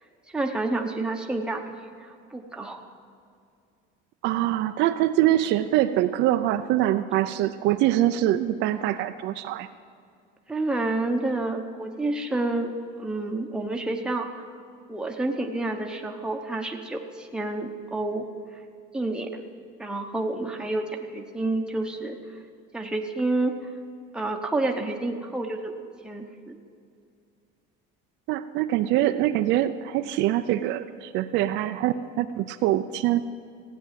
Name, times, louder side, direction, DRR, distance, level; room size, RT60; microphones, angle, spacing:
voice 1, 0.3-1.6 2.3-2.8 10.5-12.7 13.0-14.3 14.9-18.2 18.9-19.4 19.8-22.2 22.7-23.5 24.1-25.7 26.0-26.5, right 2 dB, 5° right, 1 dB, 1.0 m, -29 dB
voice 2, 4.2-9.7 28.3-33.2, right 13 dB, 60° right, 9 dB, 0.5 m, -24 dB
16.0 x 9.2 x 7.5 m, 2.3 s
cardioid pair, 165°, 21 cm